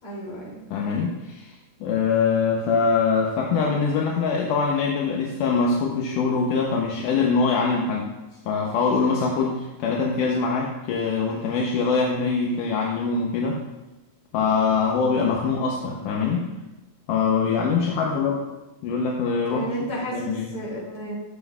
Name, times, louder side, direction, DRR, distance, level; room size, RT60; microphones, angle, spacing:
voice 1, 0.0-0.7 19.5-21.1, right 1 dB, 40° left, -5 dB, 3.6 m, -32 dB
voice 2, 0.7-1.5 1.8-8.1 8.5-13.6 14.3-16.5 17.1-18.4 18.8-19.7 19.9-20.5, left 5 dB, 75° left, -1 dB, 2.1 m, -23 dB
13.0 x 7.5 x 2.4 m, 1.1 s
omnidirectional pair, 4.2 m